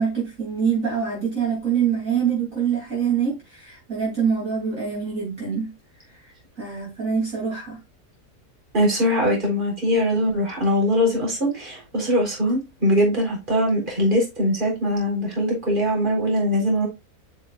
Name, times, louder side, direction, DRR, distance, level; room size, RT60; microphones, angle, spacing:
voice 1, 0.0-5.7 6.6-7.8, right 7 dB, 55° right, 3.4 m, -25 dB
voice 2, 8.7-16.9, equal, 30° right, 4.0 m, -21 dB
8.1 x 6.3 x 2.4 m
omnidirectional pair, 1.7 m